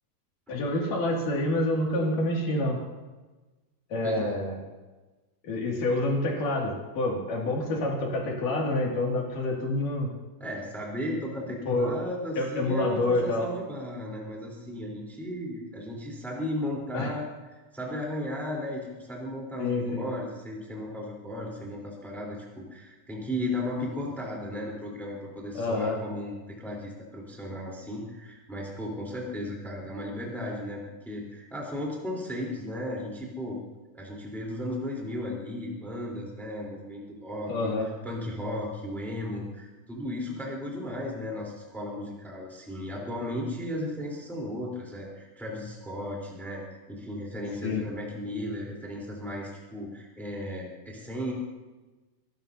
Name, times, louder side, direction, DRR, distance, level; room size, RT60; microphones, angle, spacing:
voice 1, 0.5-2.8 3.9-4.6 5.4-10.1 11.7-11.9 12.4-13.5 16.9-17.1 19.6-20.0 25.6-26.0 37.5-37.9 47.6-47.8, left 2 dB, 55° left, -1 dB, 3.6 m, -27 dB
voice 2, 4.0-4.3 10.4-17.2 17.7-33.6 33.9-37.7 38.0-46.6 46.9-51.3, left 1 dB, ahead, -3 dB, 2.8 m, -35 dB
27.0 x 12.5 x 2.8 m, 1.2 s
omnidirectional pair, 5.0 m